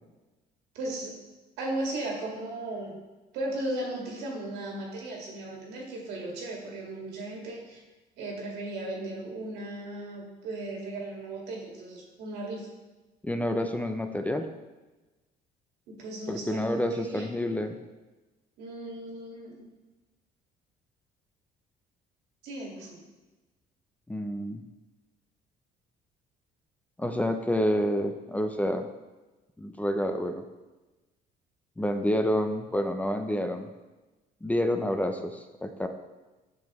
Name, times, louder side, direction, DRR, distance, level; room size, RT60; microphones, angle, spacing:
voice 1, 0.7-1.1 1.6-3.0 3.3-7.8 8.2-12.7 15.9-17.3 18.6-19.7 22.4-23.0, right 1 dB, 85° right, -2 dB, 2.1 m, -36 dB
voice 2, 13.2-14.5 16.3-17.8 24.1-24.6 27.0-28.9 29.6-30.4 31.8-33.7 34.4-35.9, equal, 10° left, 6 dB, 0.5 m, -28 dB
7.9 x 6.9 x 3.1 m, 1.1 s
cardioid pair, 110°, 17 cm